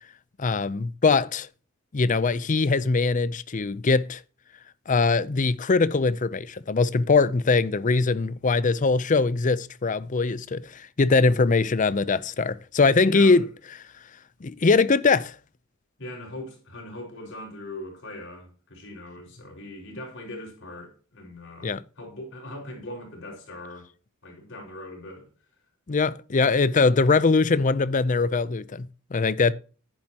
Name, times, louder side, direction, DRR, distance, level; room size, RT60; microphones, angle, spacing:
voice 1, 0.4-1.5 1.9-4.2 4.9-13.4 14.4-15.3 21.6-21.8 25.9-29.5, left 4 dB, 35° left, 0.5 m, -22 dB
voice 2, 13.0-13.4 16.0-23.9 24.2-25.3, left 1 dB, 60° left, 5.1 m, -40 dB
10.5 x 10.5 x 2.9 m
head